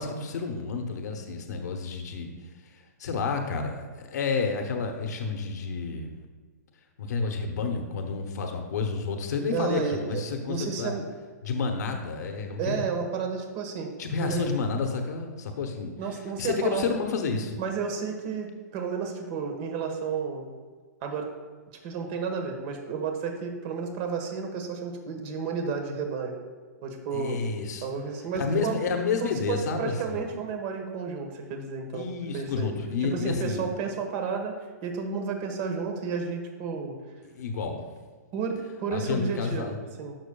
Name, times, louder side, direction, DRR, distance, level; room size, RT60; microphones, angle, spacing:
voice 1, 0.0-2.3 2.7-6.2 7.0-11.0 11.4-12.8 14.0-15.9 16.4-17.6 27.1-27.9 28.3-30.2 31.9-33.7 37.2-37.8 38.9-39.8, left 4 dB, 70° left, 4 dB, 1.0 m, -30 dB
voice 2, 9.5-10.2 10.5-11.0 12.6-13.9 14.2-14.5 16.0-16.9 17.6-20.5 21.0-21.3 21.8-26.3 26.8-27.4 27.8-28.8 29.2-32.1 32.3-32.7 33.0-34.5 34.8-37.0 38.3-40.2, right 5 dB, 40° right, 4 dB, 1.3 m, -32 dB
12.0 x 6.0 x 2.3 m, 1.5 s
hypercardioid pair, 140°, 9 cm